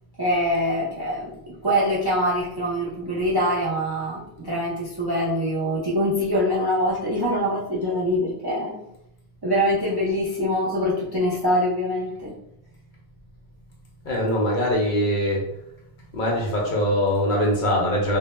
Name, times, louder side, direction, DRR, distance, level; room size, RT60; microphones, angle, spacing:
voice 1, 0.2-8.8 9.4-12.3, equal, 40° right, -6 dB, 0.3 m, -24 dB
voice 2, 14.0-15.5 16.1-18.2, equal, 55° left, -2 dB, 0.6 m, -22 dB
2.1 x 2.1 x 3.0 m, 0.80 s
omnidirectional pair, 1.1 m